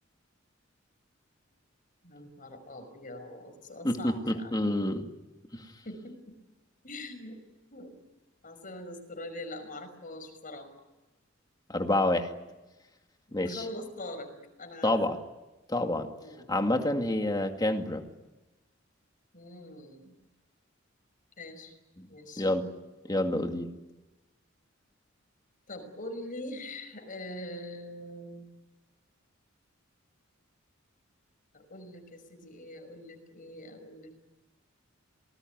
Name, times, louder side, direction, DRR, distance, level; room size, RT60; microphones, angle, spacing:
voice 1, 2.0-4.7 5.8-6.2 6.8-7.4 7.7-7.9 8.4-10.7 13.3-14.3 14.6-14.9 16.2-16.5 19.3-20.2 21.4-21.7 22.1-22.5 25.7-28.5 31.5-34.3, left 1 dB, 45° left, 7 dB, 5.7 m, -43 dB
voice 2, 3.8-5.1 5.5-5.7 11.7-12.3 13.3-13.6 14.8-15.2 15.7-16.1 16.5-18.0 22.0-22.1 22.4-22.7 23.0-23.7, left 1 dB, 20° left, 5 dB, 2.3 m, -28 dB
27.5 x 19.5 x 9.5 m, 1.1 s
head